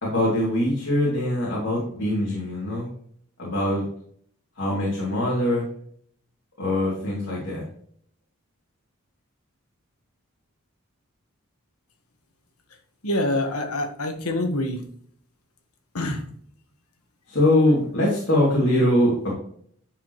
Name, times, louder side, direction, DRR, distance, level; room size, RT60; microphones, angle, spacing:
voice 1, 0.0-2.9 3.4-3.8 4.6-5.7 6.6-7.6 17.3-19.3, left 1 dB, 55° left, -6 dB, 2.8 m, -22 dB
voice 2, 13.0-14.8 15.9-16.2, left 1 dB, 85° left, 5 dB, 1.5 m, -26 dB
11.0 x 5.0 x 3.1 m, 0.62 s
head